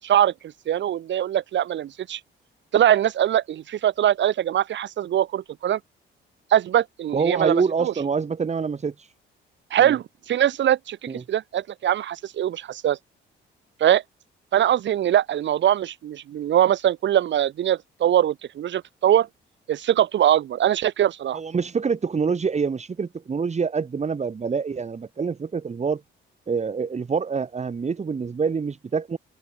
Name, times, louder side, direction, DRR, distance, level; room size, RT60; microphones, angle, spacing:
voice 1, 0.0-0.3 0.7-2.2 2.7-5.8 6.5-7.9 9.7-11.0 11.3-13.0 13.8-14.0 14.5-19.3 19.7-21.4, right 11 dB, 65° right, 1.8 m, -22 dB
voice 2, 7.1-9.1 9.8-10.0 11.1-11.2 21.3-26.0 26.5-29.2, right 5 dB, 35° right, 2.5 m, -26 dB
open air
cardioid pair, 90°, 20 cm